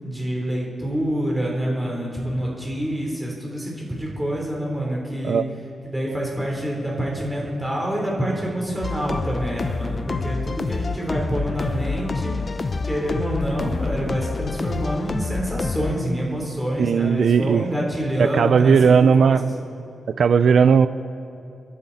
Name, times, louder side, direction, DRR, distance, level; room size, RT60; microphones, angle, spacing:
voice 1, 0.0-5.4 5.8-12.3 12.8-19.5, right 1 dB, 5° right, -3 dB, 3.8 m, -27 dB
sound 1, 8.8-16.0, left 4 dB, 35° left, 0.6 m, -27 dB
voice 2, 16.8-17.6 18.2-19.4 20.2-20.9, right 6 dB, 65° right, 13 dB, 0.4 m, -16 dB
28.5 x 11.5 x 4.2 m, 2.6 s
wide cardioid pair, 110°, 0 cm